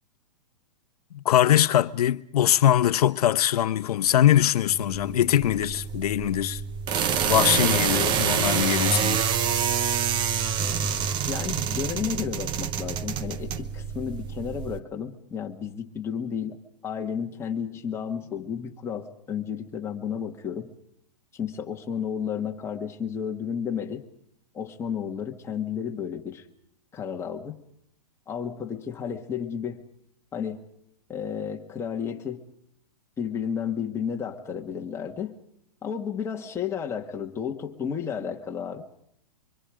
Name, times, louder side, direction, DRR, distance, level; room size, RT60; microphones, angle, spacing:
voice 1, 1.1-6.6 7.2-9.2, left 11 dB, 70° left, 1.1 m, -22 dB
sound 1, 4.7-14.8, right 7 dB, 20° right, 0.9 m, -27 dB
voice 2, 11.3-16.6 16.8-20.7 21.3-24.0 24.5-26.4 26.9-27.6 28.3-29.8 30.3-30.6 31.1-32.4 33.2-35.4 35.8-38.9, left 7 dB, 15° left, 2.0 m, -32 dB
25.5 x 25.0 x 5.1 m
hypercardioid pair, 150°, 21 cm